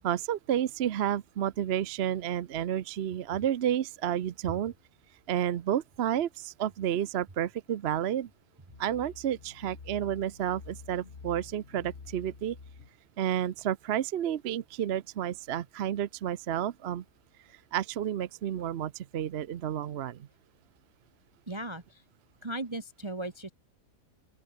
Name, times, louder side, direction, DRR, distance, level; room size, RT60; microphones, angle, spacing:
voice 1, 0.0-4.7 5.3-8.3 8.8-12.6 13.2-17.0 17.4-20.3, right 10 dB, 55° right, 0.8 m, -31 dB
sound 1, 8.7-12.9, left 4 dB, 50° left, 2.1 m, -48 dB
voice 2, 21.5-22.0 22.4-23.5, right 1 dB, 20° right, 1.4 m, -37 dB
open air
omnidirectional pair, 1.5 m